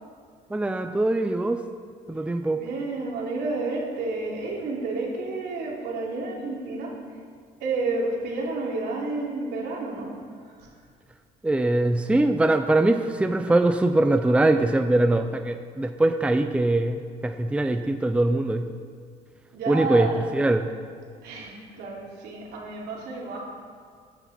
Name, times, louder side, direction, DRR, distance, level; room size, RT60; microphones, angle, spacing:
voice 1, 0.5-1.6 2.1-2.6 11.4-18.7 19.7-20.1 20.3-20.7, right 2 dB, 5° right, 7 dB, 0.6 m, -22 dB
voice 2, 2.5-7.0 7.6-10.2 10.4-10.7 19.5-20.2 21.2-23.4, right 3 dB, 75° right, -3 dB, 3.3 m, -30 dB
15.5 x 10.5 x 4.4 m, 2.1 s
cardioid pair, 110°, 17 cm